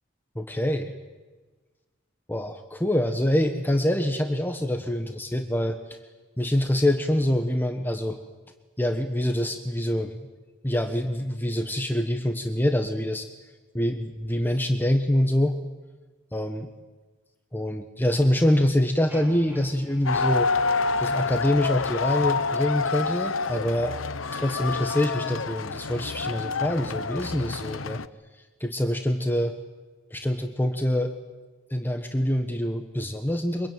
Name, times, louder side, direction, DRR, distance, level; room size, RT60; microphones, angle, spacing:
voice 1, 0.3-0.9 2.3-5.8 6.4-8.2 8.8-10.3 10.6-13.3 13.7-15.6 16.3-16.6 17.5-20.5 21.0-24.0 24.3-28.0 28.6-29.5 30.1-31.1 31.7-33.7, left 1 dB, 10° left, 6 dB, 1.3 m, -25 dB
sound 1, 19.1-21.4, equal, 10° right, 3.7 m, -49 dB
sound 2, 20.1-28.1, left 4 dB, 90° left, 0.9 m, -27 dB
25.0 x 23.0 x 9.2 m, 1.3 s
head